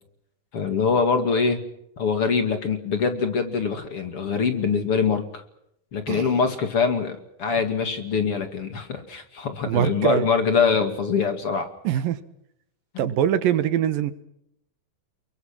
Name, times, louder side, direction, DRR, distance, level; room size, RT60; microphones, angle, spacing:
voice 1, 0.5-1.6 2.0-5.4 5.9-11.7 12.9-13.1, left 5 dB, 45° left, 8 dB, 2.8 m, -24 dB
voice 2, 6.1-6.4 9.7-10.3 11.8-12.2 13.0-14.1, right 10 dB, 80° right, 13 dB, 3.0 m, -23 dB
29.5 x 22.5 x 6.0 m, 0.76 s
omnidirectional pair, 4.0 m